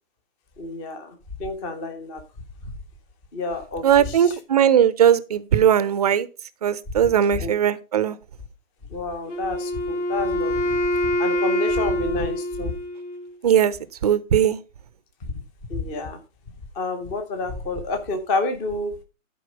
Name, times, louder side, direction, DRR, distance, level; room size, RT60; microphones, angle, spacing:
voice 1, 0.6-2.2 3.3-4.4 7.0-7.5 8.9-10.8 11.2-12.7 15.2-15.3 15.7-16.2 16.7-19.0, left 2 dB, 10° left, 0.7 m, -29 dB
voice 2, 3.8-6.3 6.6-8.2 13.4-13.8 14.0-14.6, right 9 dB, 30° right, 0.6 m, -19 dB
Wind instrument woodwind instrument, 9.3-13.3, left 1 dB, 60° left, 2.2 m, -25 dB
12.0 x 4.7 x 5.1 m
figure-of-eight pair, 135°, 40 cm